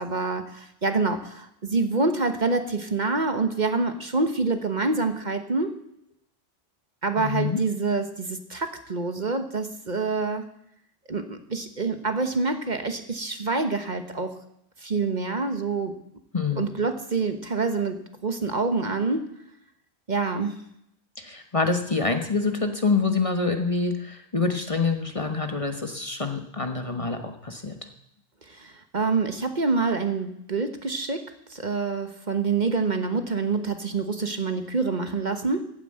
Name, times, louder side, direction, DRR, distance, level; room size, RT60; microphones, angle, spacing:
voice 1, 0.0-5.8 7.0-10.4 11.1-14.4 14.8-15.9 16.6-19.3 20.1-20.6 28.5-35.7, right 3 dB, 45° right, 8 dB, 1.3 m, -26 dB
voice 2, 7.2-7.6 16.3-16.6 21.2-27.7, left 4 dB, 30° left, 6 dB, 1.2 m, -26 dB
15.0 x 9.3 x 7.6 m, 0.76 s
omnidirectional pair, 1.1 m